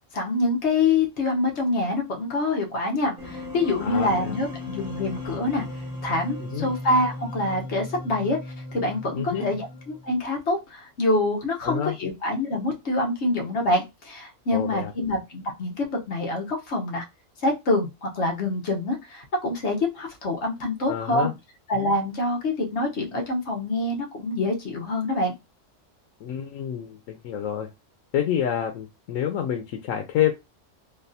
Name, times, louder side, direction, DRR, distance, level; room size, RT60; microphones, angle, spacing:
voice 1, 0.1-5.6 6.0-8.4 8.7-17.0 17.4-21.3 21.7-25.3, left 2 dB, 60° left, 1 dB, 1.2 m, -26 dB
sound 1, 3.2-10.2, left 2 dB, 45° right, 1.3 m, -37 dB
voice 2, 3.8-4.4 6.4-6.7 9.1-9.5 11.6-12.0 14.5-14.9 20.9-21.3 26.2-27.7 28.1-30.3, left 10 dB, 90° left, 4 dB, 1.0 m, -28 dB
3.4 x 2.3 x 2.6 m, 0.23 s
omnidirectional pair, 1.3 m